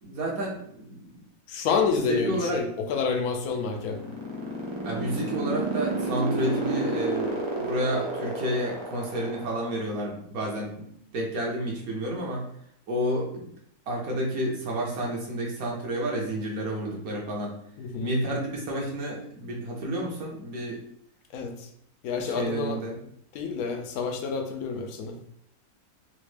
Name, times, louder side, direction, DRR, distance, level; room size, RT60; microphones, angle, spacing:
voice 1, 0.0-1.2 2.1-2.6 4.8-10.9 11.1-12.4 12.9-13.5 13.9-17.6 18.0-20.8 22.2-22.9, right 1 dB, 70° right, -2 dB, 1.3 m, -30 dB
voice 2, 1.5-4.0 17.8-18.1 21.3-21.5 22.0-22.8 23.3-25.1, left 5 dB, 75° left, 4 dB, 1.0 m, -28 dB
sound 1, 3.4-10.0, right 2 dB, 30° right, 0.5 m, -30 dB
4.0 x 2.1 x 3.2 m, 0.68 s
omnidirectional pair, 1.6 m